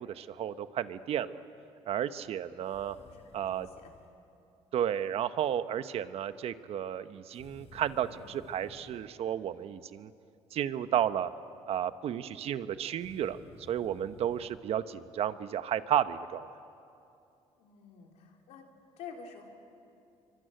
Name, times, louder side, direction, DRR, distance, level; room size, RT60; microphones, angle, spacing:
voice 1, 0.0-1.4 1.8-3.0 3.3-3.7 4.7-10.1 10.5-11.3 11.7-13.4 13.7-16.5, right 10 dB, 65° right, 12 dB, 1.0 m, -32 dB
sound 1, 2.6-4.1 7.3-9.1 12.9-14.6, left 6 dB, 70° left, 4.2 m, -55 dB
voice 2, 2.9-3.9 17.6-18.6 19.0-19.5, left 6 dB, 85° left, 1 dB, 3.7 m, -49 dB
25.5 x 24.0 x 9.2 m, 2.6 s
cardioid pair, 100°, 11 cm